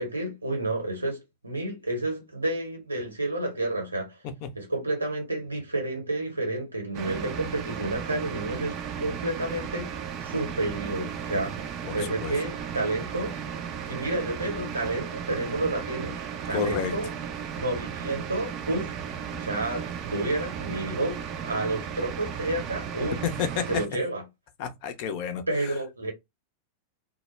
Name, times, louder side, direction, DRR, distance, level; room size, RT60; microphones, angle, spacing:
voice 1, 0.0-4.1 4.5-9.9 10.2-11.5 11.9-13.3 13.9-17.1 17.5-19.0 19.4-23.2 23.7-24.2 25.5-26.1, right 2 dB, 80° right, 1.1 m, -30 dB
sound 1, 6.9-23.9, right 7 dB, 35° right, 0.4 m, -35 dB
voice 2, 16.5-16.9 23.2-23.7 24.6-25.7, left 7 dB, 45° left, 0.5 m, -30 dB
2.2 x 2.1 x 3.1 m
figure-of-eight pair, 90°, 0 cm